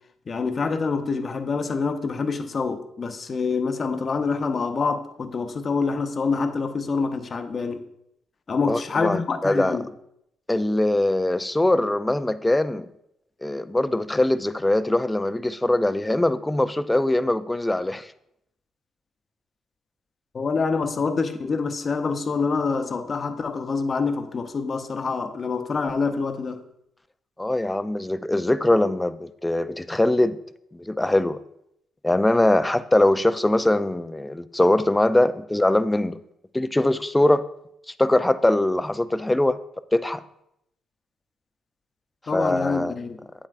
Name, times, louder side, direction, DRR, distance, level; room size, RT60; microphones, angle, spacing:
voice 1, 0.3-7.9 8.5-9.9 20.3-26.6 42.3-43.2, left 4 dB, 40° left, 0.7 m, -26 dB
voice 2, 8.7-9.8 10.5-12.9 13.4-18.1 27.4-30.4 30.7-31.4 32.0-36.2 36.5-37.4 38.0-39.6 39.9-40.2 42.3-42.9, left 1 dB, 10° left, 0.4 m, -22 dB
8.7 x 7.5 x 2.5 m
cardioid pair, 90°, 0 cm